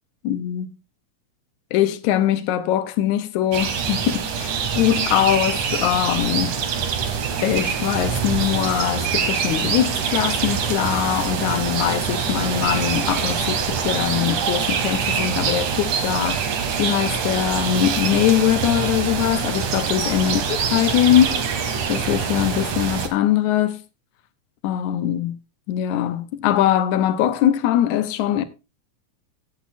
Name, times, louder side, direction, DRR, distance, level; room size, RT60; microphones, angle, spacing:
voice 1, 0.2-0.8 1.7-6.6 7.4-16.5 16.8-21.5 21.9-23.8 24.6-25.4 25.7-28.4, left 11 dB, 80° left, 2.3 m, -22 dB
sound 1, 3.5-23.1, right 6 dB, 80° right, 3.0 m, -24 dB
16.5 x 8.5 x 2.6 m
omnidirectional pair, 3.5 m